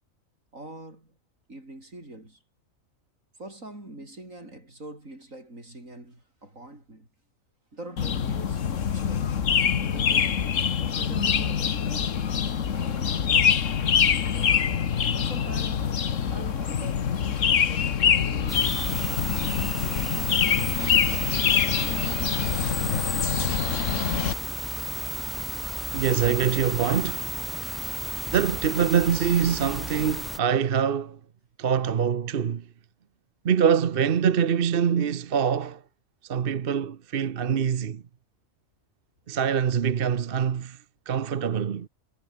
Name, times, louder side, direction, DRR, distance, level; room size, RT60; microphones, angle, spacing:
voice 1, 0.5-1.2 1.5-2.4 3.3-7.1 7.7-9.4 9.8-10.5 10.8-12.2 12.7-14.7 15.1-16.0 16.3-19.8 20.1-20.8 26.2-26.6, right 1 dB, 70° right, 8.3 m, -44 dB
sound 1, 8.0-24.3, left 7 dB, 65° left, 1.6 m, -25 dB
sound 2, 18.5-30.4, equal, ahead, 1.0 m, -33 dB
voice 2, 25.9-27.3 28.3-31.2 31.6-32.6 33.4-35.8 36.3-38.0 39.3-40.8 41.1-41.9, right 7 dB, 45° right, 1.0 m, -24 dB
omnidirectional pair, 1.4 m